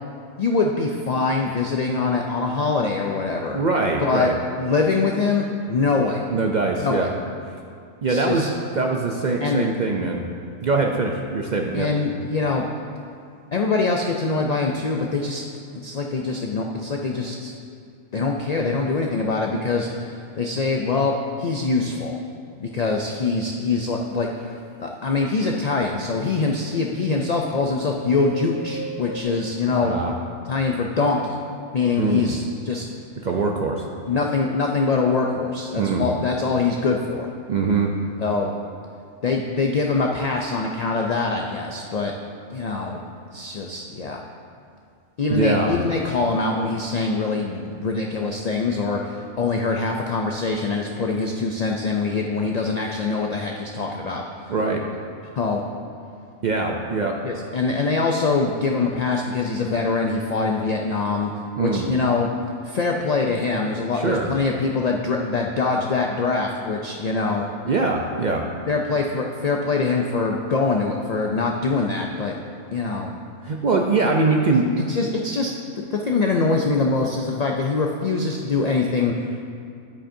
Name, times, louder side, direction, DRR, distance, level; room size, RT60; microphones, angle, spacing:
voice 1, 0.4-3.6 4.0-4.3 4.6-6.2 6.8-7.1 8.1-8.5 9.4-9.7 11.7-12.6 13.5-15.4 15.8-17.5 18.1-22.1 22.6-29.9 30.5-31.4 31.7-32.8 34.1-37.3 38.2-38.5 39.2-42.1 42.5-43.0 43.3-44.2 45.2-54.5 55.3-55.6 57.2-61.3 61.6-62.3 62.6-67.4 68.7-72.4 72.7-73.1 74.9-79.4, left 4 dB, 90° left, 1 dB, 0.3 m, -23 dB
voice 2, 3.5-4.3 6.3-7.1 8.0-8.4 8.7-10.2 10.6-11.9 29.8-30.1 32.0-32.4 33.2-33.8 35.7-36.1 37.5-37.9 45.3-45.8 54.5-54.8 56.4-57.2 61.6-61.9 63.9-64.3 67.6-68.4 73.4-74.7, right 3 dB, 60° right, 1 dB, 0.4 m, -22 dB
sound 1, 25.2-25.3 25.5-29.2, right 4 dB, 40° right, 1.2 m, -38 dB
10.0 x 8.6 x 2.6 m, 2.3 s
omnidirectional pair, 1.3 m